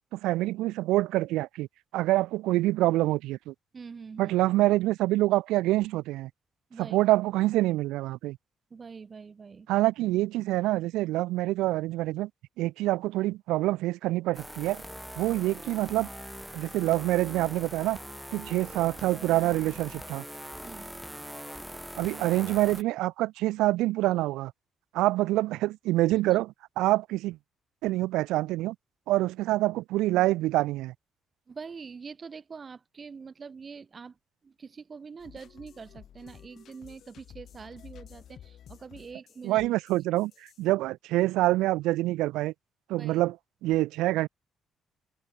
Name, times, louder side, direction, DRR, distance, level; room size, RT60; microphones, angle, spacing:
voice 1, 0.1-1.7 1.9-3.5 4.2-6.3 6.8-8.4 9.7-12.3 12.6-14.8 15.2-16.1 16.5-18.0 18.3-20.2 22.0-24.5 24.9-27.4 27.8-28.8 29.1-30.9 39.4-40.3 40.6-42.5 42.9-43.4 43.6-44.3, right 17 dB, 65° right, 0.3 m, -26 dB
voice 2, 3.7-4.4 6.7-7.0 8.7-9.7 20.6-20.9 26.1-26.2 31.5-34.2 34.4-39.6 42.9-43.2, right 5 dB, 40° right, 0.7 m, -44 dB
sound 1, 14.3-22.8, equal, ahead, 1.8 m, -42 dB
sound 2, 35.2-40.6, left 10 dB, 55° left, 2.5 m, -51 dB
figure-of-eight pair, 45°, 0 cm